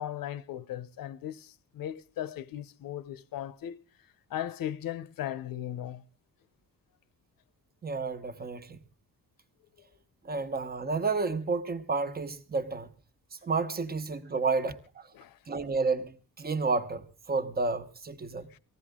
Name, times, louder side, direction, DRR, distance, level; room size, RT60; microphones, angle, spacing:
voice 1, 0.0-3.8 4.3-6.0 15.1-15.4 18.5-18.6, left 11 dB, 80° left, 0.9 m, -37 dB
voice 2, 7.8-8.8 10.2-12.9 13.4-15.1 15.5-18.5, right 4 dB, 30° right, 1.1 m, -31 dB
19.5 x 15.5 x 3.7 m
wide cardioid pair, 175°, 34 cm